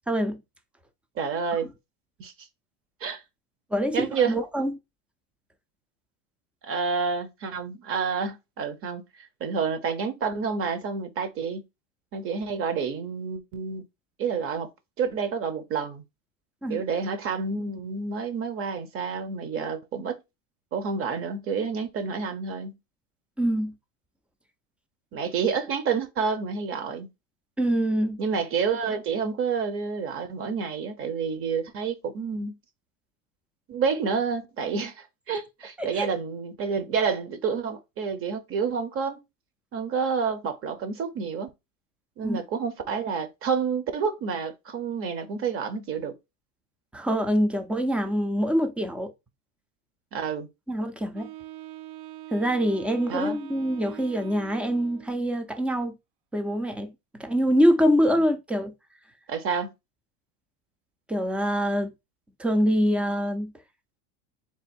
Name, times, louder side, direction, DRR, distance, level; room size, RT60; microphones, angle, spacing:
voice 1, 0.1-0.4 3.7-4.7 16.6-16.8 23.4-23.7 27.6-28.2 35.8-36.1 42.2-42.4 46.9-49.1 50.7-51.3 52.3-56.0 56.3-58.7 61.1-61.9 62.4-63.5, equal, 5° right, 0.3 m, -25 dB
voice 2, 1.2-1.7 2.2-2.3 3.0-3.2 3.9-4.4 6.6-9.0 9.4-11.6 12.1-13.8 14.2-14.7 15.0-16.0 16.7-20.2 20.7-22.8 25.1-27.1 28.2-32.6 33.7-39.2 39.7-41.5 42.2-46.1 50.1-50.5 53.1-53.4 59.3-59.7, right 5 dB, 35° right, 0.9 m, -29 dB
Wind instrument woodwind instrument, 51.1-55.3, right 15 dB, 60° right, 0.6 m, -43 dB
3.6 x 2.5 x 4.4 m
supercardioid pair, 130°, 38 cm